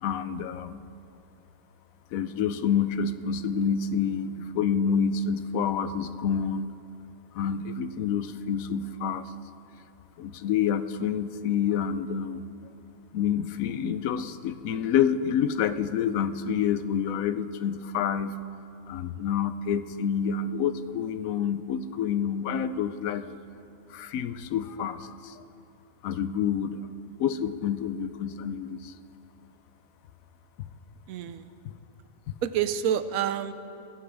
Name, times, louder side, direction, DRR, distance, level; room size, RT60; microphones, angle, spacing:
voice 1, 0.0-0.8 2.1-6.7 7.3-9.3 10.2-12.4 13.1-18.4 18.9-23.3 23.9-25.4 26.0-26.9 27.2-28.9 31.6-31.7, left 7 dB, 85° left, 12 dB, 1.1 m, -28 dB
voice 2, 31.1-31.5 32.4-33.5, right 9 dB, 90° right, 12 dB, 1.1 m, -28 dB
20.5 x 15.0 x 3.5 m, 2.8 s
omnidirectional pair, 1.4 m